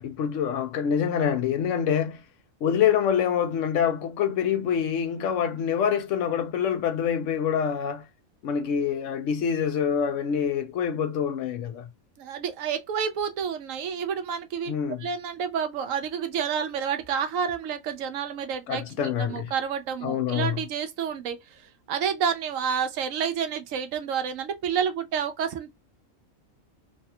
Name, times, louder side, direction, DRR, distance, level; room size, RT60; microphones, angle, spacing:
voice 1, 0.0-2.2 2.6-8.0 8.4-11.9 14.7-15.1 18.7-19.5 20.0-20.6, left 8 dB, 70° left, 0.9 m, -26 dB
voice 2, 12.2-14.7 15.0-21.6 21.9-25.7, right 7 dB, 75° right, 1.0 m, -29 dB
3.2 x 2.2 x 2.7 m
omnidirectional pair, 1.4 m